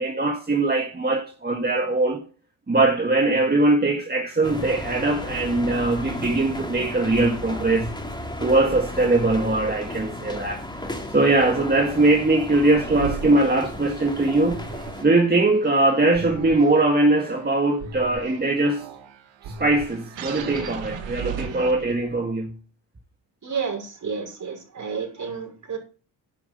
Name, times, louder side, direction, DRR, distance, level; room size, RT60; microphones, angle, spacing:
voice 1, 0.0-2.2 2.7-7.9 8.4-10.6 11.1-14.6 15.0-18.8 19.6-22.5, right 2 dB, 20° right, 1.7 m, -21 dB
sound 1, 4.4-15.0, left 1 dB, 10° left, 3.3 m, -34 dB
sound 2, 12.8-22.2, right 6 dB, 80° right, 2.1 m, -37 dB
voice 2, 21.2-21.5 23.4-25.8, right 6 dB, 40° right, 5.9 m, -31 dB
10.5 x 6.0 x 7.8 m
cardioid pair, 80°, 44 cm